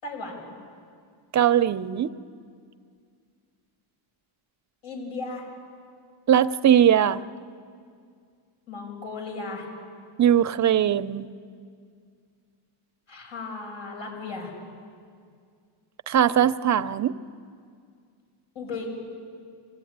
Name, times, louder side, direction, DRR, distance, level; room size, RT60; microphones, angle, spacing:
voice 1, 0.0-0.4 4.8-5.5 8.7-9.7 13.1-14.5 18.5-18.9, left 3 dB, 70° left, 6.5 m, -35 dB
voice 2, 1.3-2.1 6.3-7.2 10.2-11.3 16.1-17.1, right 10 dB, 35° right, 0.5 m, -20 dB
25.5 x 16.5 x 9.4 m
cardioid pair, 175°, 49 cm